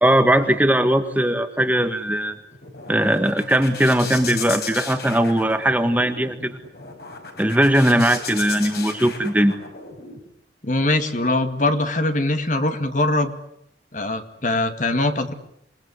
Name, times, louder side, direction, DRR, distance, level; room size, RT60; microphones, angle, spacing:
voice 1, 0.0-2.4 2.9-6.6 7.4-9.6, right 1 dB, 10° right, 8 dB, 1.7 m, -19 dB
sound 1, 2.3-10.2, left 5 dB, 60° left, 5.3 m, -35 dB
voice 2, 10.6-13.3 13.9-15.3, left 2 dB, 45° left, 8 dB, 2.2 m, -22 dB
28.0 x 21.0 x 9.8 m, 0.75 s
head